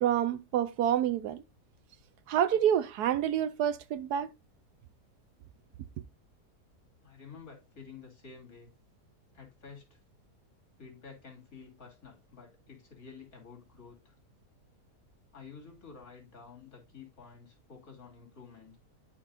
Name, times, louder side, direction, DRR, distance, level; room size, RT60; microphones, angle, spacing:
voice 1, 0.0-1.4 2.3-4.3, right 10 dB, 75° right, 1.1 m, -28 dB
voice 2, 7.0-8.7 9.3-10.0 10.8-14.1 15.3-18.8, left 5 dB, 55° left, 3.4 m, -51 dB
11.5 x 4.5 x 2.5 m
omnidirectional pair, 1.8 m